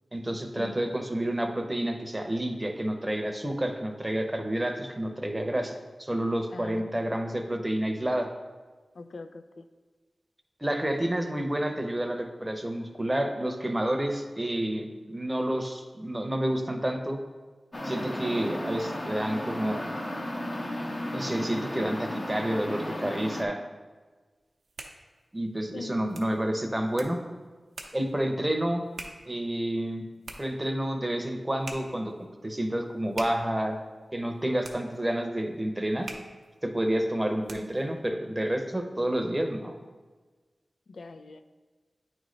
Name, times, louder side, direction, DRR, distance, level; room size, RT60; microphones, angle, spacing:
voice 1, 0.1-8.3 10.6-17.2 17.8-19.9 21.1-23.6 25.3-27.2 27.9-28.8 29.3-30.1 30.4-33.8 34.1-36.1 36.6-39.7, right 1 dB, 20° right, 5 dB, 0.7 m, -29 dB
voice 2, 6.5-7.2 8.9-9.6 25.7-26.2 40.9-41.4, left 3 dB, 90° left, 8 dB, 0.3 m, -43 dB
sound 1, 17.7-23.5, left 1 dB, 35° left, 0.8 m, -34 dB
sound 2, 24.4-37.9, right 3 dB, 90° right, 0.6 m, -47 dB
8.8 x 3.2 x 3.9 m, 1.3 s
wide cardioid pair, 60°, 0 cm